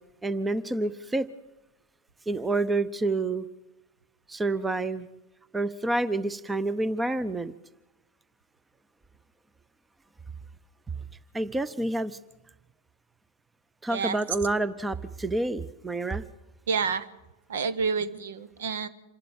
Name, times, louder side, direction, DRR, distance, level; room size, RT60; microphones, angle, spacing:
voice 1, 0.2-1.3 2.3-3.5 4.3-5.1 5.5-7.5 11.3-12.2 13.8-16.2, right 2 dB, 10° right, 16 dB, 0.8 m, -28 dB
voice 2, 16.7-17.1 17.5-18.9, right 5 dB, 60° right, 15 dB, 1.1 m, -28 dB
27.0 x 12.0 x 8.2 m, 1.0 s
figure-of-eight pair, 90°, 0 cm